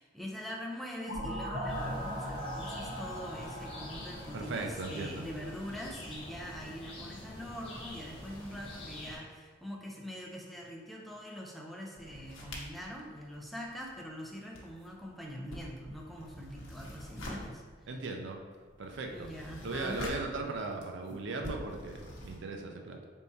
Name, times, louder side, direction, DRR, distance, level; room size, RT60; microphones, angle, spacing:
voice 1, 0.0-17.9 19.1-20.0, equal, ahead, -2 dB, 0.5 m, -43 dB
sound 1, 1.1-5.8, equal, 85° right, 1.3 m, -40 dB
sound 2, 1.7-9.2, left 1 dB, 30° left, 1.0 m, -46 dB
voice 2, 4.3-5.2 17.9-18.4 18.8-19.3 19.6-23.0, right 3 dB, 65° right, 3 dB, 0.4 m, -37 dB
sound 3, 11.9-14.1 14.4-22.4, left 1 dB, 85° left, 0.8 m, -46 dB
4.2 x 3.5 x 2.7 m, 1.5 s
head